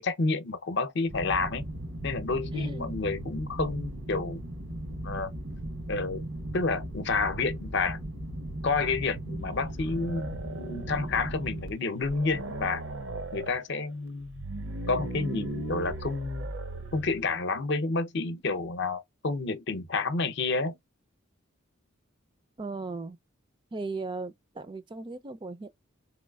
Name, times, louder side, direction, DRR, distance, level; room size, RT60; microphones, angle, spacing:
voice 1, 0.0-1.6 2.0-4.4 5.0-5.3 5.9-6.2 6.5-8.0 8.6-12.9 13.3-14.5 14.9-16.5 16.9-20.8, left 3 dB, 55° left, 0.6 m, -30 dB
sound 1, 1.1-11.7, right 1 dB, 85° right, 1.2 m, -37 dB
voice 2, 2.5-2.9 22.6-23.2 23.7-25.7, right 3 dB, 25° right, 0.4 m, -37 dB
sound 2, 9.8-11.3 11.7-11.8 12.0-13.6 14.2-17.3, right 2 dB, 65° right, 0.6 m, -37 dB
4.0 x 3.1 x 2.2 m
head